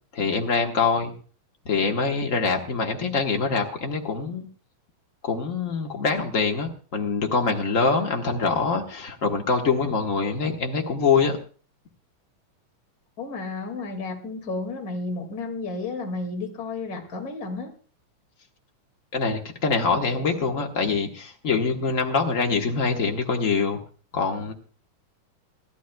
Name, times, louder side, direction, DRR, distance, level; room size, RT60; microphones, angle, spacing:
voice 1, 0.1-1.1 1.6-4.5 5.2-11.4 19.1-23.8 24.1-24.5, left 4 dB, 50° left, 2 dB, 0.9 m, -24 dB
voice 2, 13.2-17.7, left 3 dB, 30° left, 3 dB, 2.4 m, -32 dB
27.5 x 12.5 x 2.3 m, 0.40 s
omnidirectional pair, 3.7 m